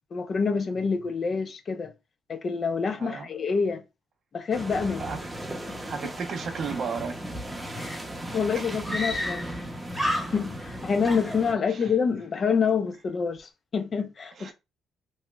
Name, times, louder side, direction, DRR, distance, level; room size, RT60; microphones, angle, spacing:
voice 1, 0.1-1.9 2.3-3.8 4.3-5.1 5.7-5.8 7.7-8.0 8.3-9.5 10.3-14.5, left 5 dB, 45° left, 0.5 m, -27 dB
voice 2, 3.0-3.3 5.0-5.2 5.8-7.2 8.5-9.0 11.7-11.9 14.3-14.5, right 5 dB, 60° right, 0.7 m, -34 dB
sound 1, 4.5-11.5, right 1 dB, 15° right, 0.7 m, -37 dB
Screaming, 8.1-8.2 8.8-9.6 9.9-10.7 11.0-11.9, left 1 dB, 5° left, 1.0 m, -31 dB
3.0 x 2.8 x 2.3 m
cardioid pair, 90°, 0 cm